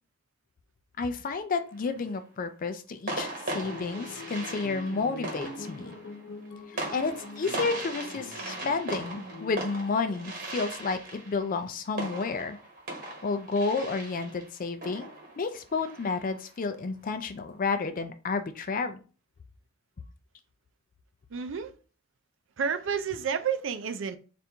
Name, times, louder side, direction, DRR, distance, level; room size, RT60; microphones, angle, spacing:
voice 1, 1.0-5.9 6.7-12.6 13.2-15.1 15.4-19.0, left 4 dB, 45° left, 0.4 m, -31 dB
sound 1, 1.6-2.2 3.1-16.5, right 2 dB, 45° right, 1.3 m, -39 dB
sound 2, 3.6-9.5, left 2 dB, 75° left, 0.9 m, -43 dB
voice 2, 21.3-21.7 22.6-24.2, right 6 dB, 70° right, 0.5 m, -30 dB
4.4 x 2.5 x 3.4 m
head